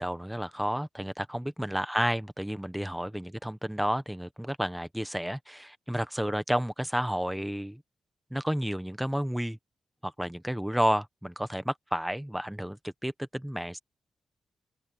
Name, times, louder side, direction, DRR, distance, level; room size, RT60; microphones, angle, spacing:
voice 1, 0.0-7.8 8.3-9.6 10.0-13.8, equal, 5° right, 1.0 m, -31 dB
open air
wide cardioid pair, 135°, 0 cm